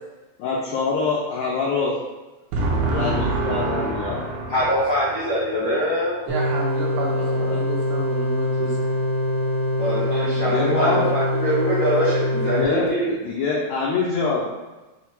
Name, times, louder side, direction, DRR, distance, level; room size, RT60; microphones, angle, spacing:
voice 1, 0.4-1.9 2.9-4.2 7.1-7.7 10.4-11.1 12.4-14.4, left 4 dB, 85° left, -3 dB, 1.6 m, -25 dB
voice 2, 2.5-5.3 6.3-8.9, right 2 dB, 75° right, -3 dB, 1.9 m, -27 dB
voice 3, 4.5-6.1 9.8-13.1, equal, 65° left, -10 dB, 1.2 m, -23 dB
sound 1, 6.3-12.6, left 1 dB, 60° right, 1.3 m, -24 dB
5.8 x 2.1 x 4.3 m, 1.1 s
omnidirectional pair, 3.9 m